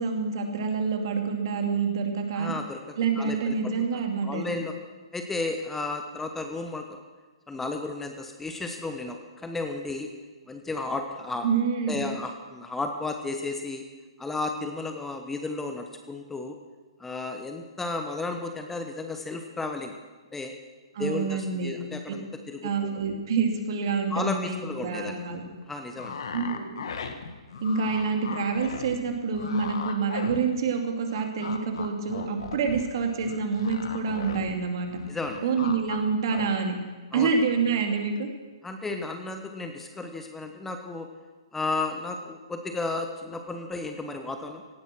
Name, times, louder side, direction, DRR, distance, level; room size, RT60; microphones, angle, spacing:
voice 1, 0.0-2.5 3.0-4.6 11.4-12.1 20.9-21.8 22.6-25.4 26.3-26.8 27.6-34.9 35.4-36.7 37.1-38.3, right 5 dB, 50° right, 4 dB, 2.4 m, -27 dB
voice 2, 2.3-3.7 4.2-4.7 5.1-7.0 7.5-10.1 10.5-11.4 11.9-13.8 14.2-16.6 17.0-19.9 20.3-20.5 21.0-23.0 24.1-25.2 25.7-26.2 35.1-35.7 37.1-37.3 38.6-41.1 41.5-44.6, left 3 dB, 5° left, 5 dB, 1.0 m, -33 dB
sound 1, 26.0-30.8 31.1-34.6 34.8-36.0 36.3-36.5, left 5 dB, 60° left, 1.5 m, -37 dB
17.5 x 11.0 x 6.2 m, 1.3 s
figure-of-eight pair, 125°, 3 cm